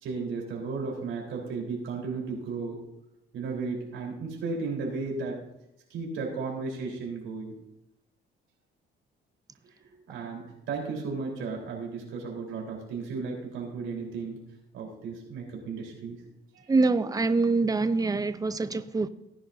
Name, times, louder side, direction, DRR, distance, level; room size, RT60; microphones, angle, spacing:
voice 1, 0.0-2.8 3.3-5.4 5.9-7.5 9.8-14.4 14.7-16.2 16.5-16.7, right 4 dB, 80° right, 4.1 m, -34 dB
voice 2, 16.7-19.1, right 3 dB, 20° right, 0.6 m, -25 dB
17.5 x 10.5 x 2.7 m
cardioid pair, 90°, 20 cm